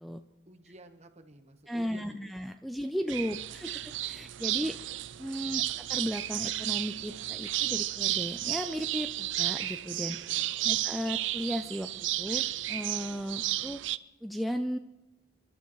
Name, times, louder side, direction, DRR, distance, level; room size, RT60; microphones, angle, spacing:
voice 1, 0.5-2.2 3.0-4.0 5.5-5.9 10.3-10.8, right 1 dB, 35° right, 6 dB, 1.2 m, -54 dB
voice 2, 1.7-4.8 5.2-5.6 5.9-10.2 10.6-13.8 14.2-14.8, equal, ahead, 7 dB, 0.4 m, -35 dB
sound 1, 3.1-14.0, right 15 dB, 75° right, 0.5 m, -33 dB
29.5 x 12.0 x 3.1 m, 0.96 s
head